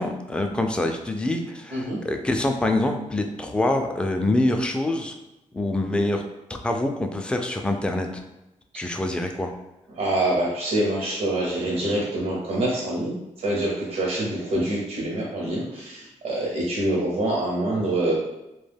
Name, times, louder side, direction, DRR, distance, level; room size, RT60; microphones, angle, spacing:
voice 1, 0.0-5.1 5.5-6.2 6.5-8.2 8.8-9.5, left 1 dB, 10° left, 4 dB, 0.3 m, -25 dB
voice 2, 10.0-13.1 13.4-18.1, right 1 dB, 75° right, -4 dB, 0.7 m, -25 dB
2.2 x 2.1 x 3.3 m, 0.94 s
cardioid pair, 80°, 13 cm